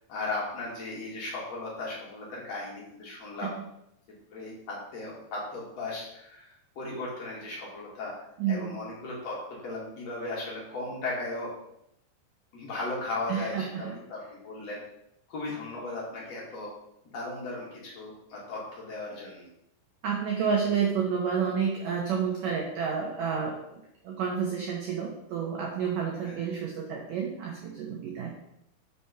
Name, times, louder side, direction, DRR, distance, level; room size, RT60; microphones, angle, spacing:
voice 1, 0.1-3.5 4.3-6.5 6.8-11.5 12.5-14.8 15.3-16.7 17.1-19.5 26.2-26.5, left 2 dB, 45° left, -4 dB, 2.6 m, -36 dB
voice 2, 8.4-8.8 13.3-13.9 20.0-23.6 24.0-28.3, right 6 dB, 85° right, 0 dB, 1.8 m, -30 dB
7.1 x 4.5 x 5.7 m, 0.79 s
omnidirectional pair, 5.4 m